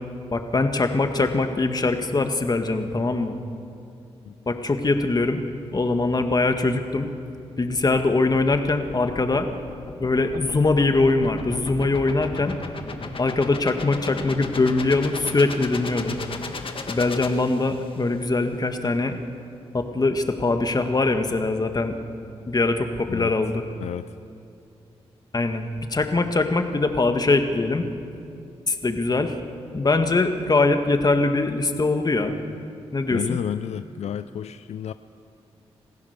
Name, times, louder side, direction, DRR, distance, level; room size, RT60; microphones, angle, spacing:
voice 1, 0.3-3.4 4.5-5.4 5.7-7.1 7.6-9.5 10.0-12.6 13.2-16.2 16.9-19.2 19.7-21.9 22.5-23.7 25.3-25.7 25.9-27.9 28.7-29.3 29.7-32.4 32.9-33.4, left 3 dB, 35° left, 6 dB, 1.8 m, -22 dB
sound 1, 7.8-18.1, left 4 dB, 50° left, 1.7 m, -36 dB
voice 2, 23.8-24.1 33.1-34.9, left 9 dB, 75° left, 12 dB, 0.5 m, -31 dB
27.5 x 15.5 x 6.7 m, 2.6 s
cardioid pair, 60°, 11 cm